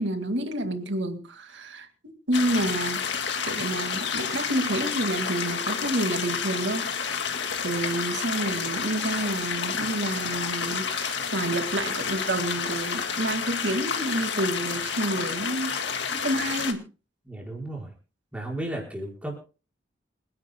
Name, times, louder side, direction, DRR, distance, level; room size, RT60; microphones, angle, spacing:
voice 1, 0.0-6.9 7.6-15.8 16.1-16.9, right 1 dB, 80° right, 6 dB, 2.1 m, -29 dB
sound 1, 2.3-16.7, left 6 dB, 75° left, 1.9 m, -30 dB
voice 2, 17.3-17.9 18.3-19.4, right 1 dB, 5° right, -2 dB, 5.1 m, -34 dB
28.0 x 11.0 x 2.2 m, 0.34 s
head